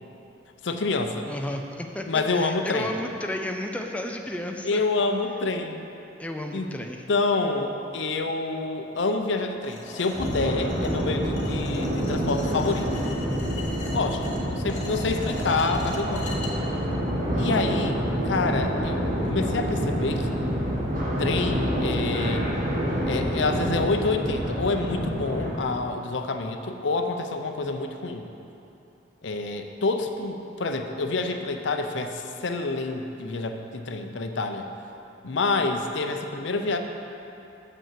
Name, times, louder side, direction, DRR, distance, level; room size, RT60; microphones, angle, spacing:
voice 1, 0.6-1.3 2.1-2.9 4.6-5.9 6.5-6.7 7.1-12.9 13.9-16.3 17.4-19.0 19.2-20.3 21.2-22.5 23.0-28.3 29.2-34.7 35.2-36.8, left 3 dB, 70° left, 6 dB, 0.6 m, -27 dB
voice 2, 1.3-4.8 6.2-7.1, left 1 dB, 5° left, 3 dB, 0.4 m, -32 dB
sound 1, 9.6-16.5, left 1 dB, 40° left, 1.2 m, -39 dB
sound 2, 10.1-25.5, equal, 45° right, 1.5 m, -27 dB
7.0 x 5.5 x 7.3 m, 2.9 s
head